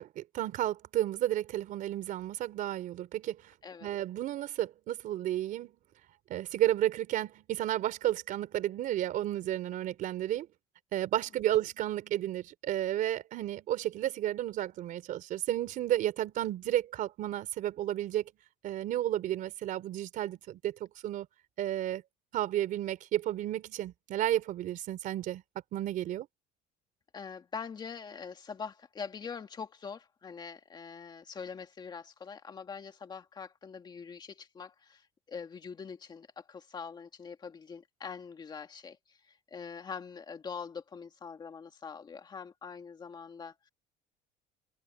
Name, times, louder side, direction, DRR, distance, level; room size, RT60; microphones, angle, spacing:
voice 1, 0.0-3.5 3.8-5.7 6.3-10.5 10.9-18.3 18.6-21.3 21.6-22.0 22.3-25.4 25.7-26.3, right 13 dB, 55° right, 3.7 m, -32 dB
voice 2, 27.1-43.7, left 6 dB, 25° left, 2.1 m, -44 dB
cardioid pair, 155°, 17 cm